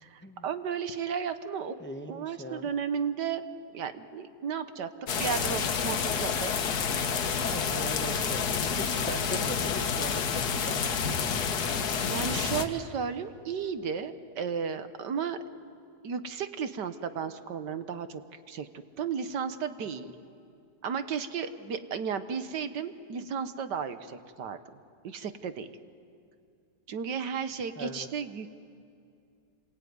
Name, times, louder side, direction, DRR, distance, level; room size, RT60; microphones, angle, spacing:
voice 1, 0.0-1.8 2.1-3.4 3.7-4.9 5.2-6.5 12.1-15.4 16.0-18.2 18.5-18.7 19.0-20.2 20.8-24.6 25.0-25.7 26.9-28.6, right 6 dB, 70° right, 10 dB, 1.7 m, -34 dB
voice 2, 1.8-2.7 7.4-10.8 19.9-20.0 27.8-28.1, right 1 dB, 10° left, 6 dB, 0.8 m, -40 dB
sound 1, 5.1-12.7, left 6 dB, 60° left, 1.6 m, -29 dB
27.5 x 21.0 x 9.5 m, 2.4 s
omnidirectional pair, 2.0 m